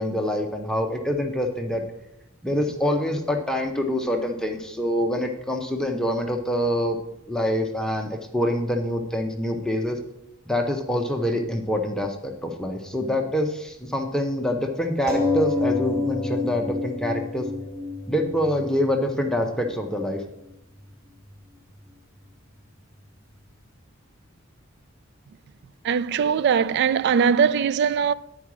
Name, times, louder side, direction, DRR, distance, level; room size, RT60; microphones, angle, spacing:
voice 1, 0.0-1.8 2.4-7.0 7.3-10.0 10.5-17.5 18.1-20.2, equal, 5° left, 0.7 m, -25 dB
sound 1, 15.1-20.1 20.8-20.9 21.2-21.3, left 3 dB, 15° right, 1.4 m, -28 dB
voice 2, 25.8-28.1, right 7 dB, 55° right, 0.3 m, -21 dB
9.8 x 4.7 x 6.0 m
head